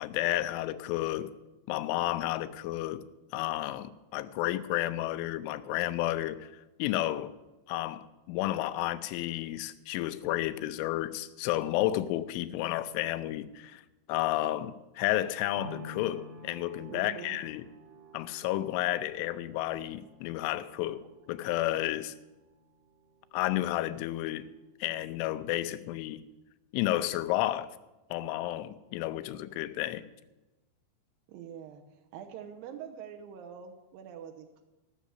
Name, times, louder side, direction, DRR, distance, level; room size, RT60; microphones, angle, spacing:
voice 1, 0.0-1.3 1.7-3.0 3.3-6.5 6.8-7.3 7.7-17.6 18.1-22.1 23.3-24.5 24.8-26.2 26.7-27.7 28.1-30.0, left 14 dB, 85° left, 3.1 m, -31 dB
sound 1, 15.6-23.7 24.1-24.2, left 1 dB, 55° right, 1.7 m, -50 dB
voice 2, 16.9-17.4 17.9-18.0 20.9-21.1 31.3-31.8 32.1-34.6, right 8 dB, 85° right, 2.0 m, -45 dB
15.5 x 6.3 x 8.2 m
omnidirectional pair, 5.4 m